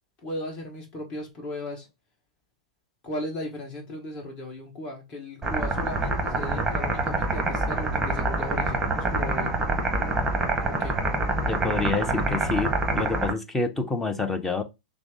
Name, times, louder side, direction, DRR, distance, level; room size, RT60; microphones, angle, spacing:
voice 1, 0.2-1.9 3.0-9.5 10.6-11.0, left 1 dB, 25° left, 1.6 m, -36 dB
sound 1, 5.4-13.3, right 2 dB, 10° right, 1.1 m, -26 dB
voice 2, 11.5-14.6, left 3 dB, 10° left, 0.7 m, -28 dB
5.9 x 2.0 x 3.6 m
hypercardioid pair, 110°, 4 cm